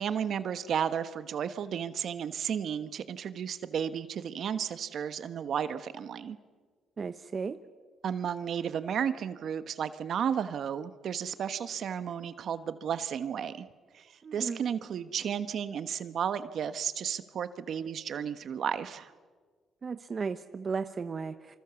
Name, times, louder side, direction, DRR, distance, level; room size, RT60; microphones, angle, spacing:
voice 1, 0.0-6.4 8.0-13.7 13.9-19.1, right 8 dB, 65° right, 12 dB, 1.2 m, -33 dB
voice 2, 7.0-7.6 14.2-14.6 19.8-21.6, right 5 dB, 40° right, 10 dB, 0.9 m, -35 dB
26.5 x 25.0 x 7.1 m, 1.5 s
cardioid pair, 90°, 0 cm